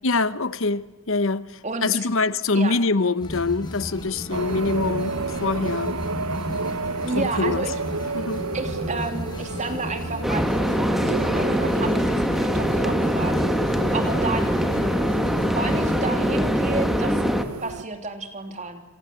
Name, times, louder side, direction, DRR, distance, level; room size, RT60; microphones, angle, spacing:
voice 1, 0.0-6.1 7.1-7.7 8.1-8.4, left 3 dB, 60° left, 1.0 m, -24 dB
voice 2, 1.6-2.1 2.5-2.8 7.0-7.8 8.5-14.6 15.4-17.2 17.6-18.8, right 3 dB, 35° right, 3.0 m, -31 dB
sound 1, 3.2-16.0, left 1 dB, 20° left, 5.7 m, -34 dB
sound 2, 4.3-17.8, right 3 dB, 80° right, 0.9 m, -32 dB
sound 3, 10.2-17.4, equal, ahead, 1.6 m, -23 dB
28.0 x 26.5 x 7.7 m
head